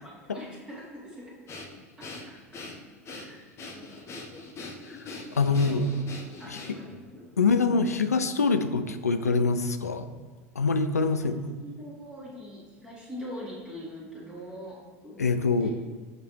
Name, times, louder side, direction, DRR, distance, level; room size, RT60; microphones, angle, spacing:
voice 1, 0.0-1.3 2.0-2.6 3.1-4.1 5.4-6.1 6.4-7.3 11.1-11.3 11.6-15.7, equal, 10° right, -6 dB, 1.7 m, -43 dB
Breathing, 1.5-7.0, left 3 dB, 30° left, 0.9 m, -42 dB
voice 2, 5.4-5.9 6.5-6.6 7.4-10.1 10.6-11.4 15.2-15.7, left 4 dB, 85° left, 9 dB, 0.4 m, -24 dB
6.5 x 3.3 x 4.4 m, 1.5 s
figure-of-eight pair, 85°, 8 cm